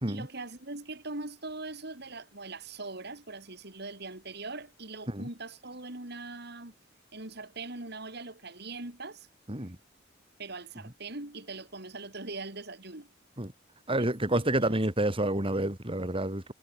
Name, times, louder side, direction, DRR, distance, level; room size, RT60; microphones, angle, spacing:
voice 1, 0.1-6.7 7.1-9.3 10.4-13.1 14.0-14.8, right 3 dB, 60° right, 4.4 m, -41 dB
voice 2, 13.9-16.5, right 1 dB, 30° right, 3.8 m, -29 dB
head